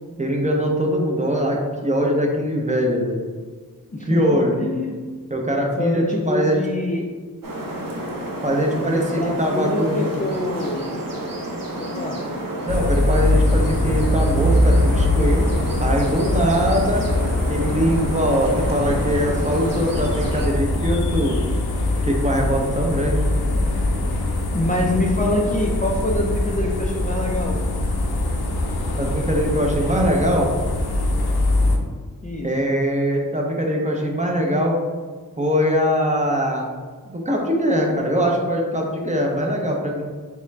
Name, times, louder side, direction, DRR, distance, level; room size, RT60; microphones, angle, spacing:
voice 1, 0.2-3.2 4.0-4.6 5.3-6.6 8.4-10.1 12.6-15.4 15.8-17.1 17.5-21.4 22.0-23.3 29.0-30.5 32.4-34.8 35.4-36.7 37.1-40.0, equal, 20° right, -1 dB, 0.6 m, -22 dB
voice 2, 3.9-5.0 5.8-7.1 8.7-10.9 11.8-12.2 24.5-27.6 32.2-32.5, left 1 dB, 25° left, -2 dB, 0.3 m, -25 dB
sound 1, 7.4-20.5, right 1 dB, 65° right, 0.8 m, -30 dB
sound 2, 12.7-31.8, left 1 dB, 85° left, 0.6 m, -22 dB
3.6 x 3.3 x 3.2 m, 1.5 s
wide cardioid pair, 100°, 37 cm